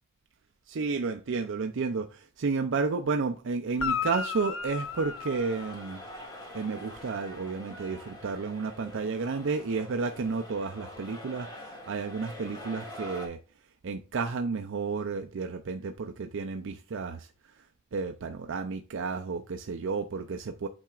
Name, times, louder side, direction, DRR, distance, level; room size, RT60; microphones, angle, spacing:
voice 1, 0.7-6.0 6.5-13.4 13.8-17.3 17.6-17.7 17.9-20.7, right 4 dB, 65° right, 0.5 m, -32 dB
Guitar, 3.7-6.3 10.2-10.3, left 6 dB, 70° left, 0.7 m, -34 dB
sound 1, 4.3-13.3, left 1 dB, 20° left, 2.1 m, -45 dB
8.7 x 5.6 x 2.4 m
head